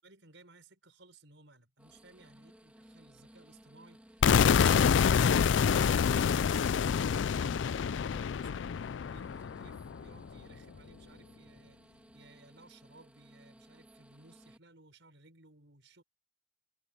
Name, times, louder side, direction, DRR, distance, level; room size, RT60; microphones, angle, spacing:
voice 1, 0.0-16.0, right 2 dB, 70° right, 5.6 m, -59 dB
sound 1, 1.8-14.6, equal, 5° right, 2.3 m, -58 dB
sound 2, 4.2-10.1, left 7 dB, 70° left, 0.4 m, -27 dB
head